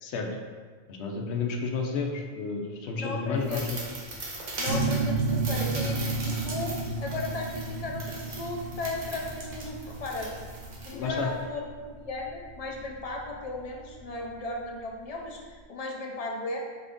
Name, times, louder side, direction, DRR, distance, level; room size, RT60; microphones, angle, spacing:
voice 1, 0.9-3.8 10.9-11.3, left 4 dB, 85° left, 2 dB, 0.9 m, -31 dB
voice 2, 3.0-3.8 4.6-10.3 10.9-16.6, left 2 dB, 45° left, -1 dB, 0.5 m, -36 dB
sound 1, 3.4-11.4, right 2 dB, 55° right, 1.0 m, -39 dB
sound 2, 4.7-14.1, right 3 dB, 80° right, 0.9 m, -32 dB
4.5 x 2.6 x 3.5 m, 1.5 s
omnidirectional pair, 1.1 m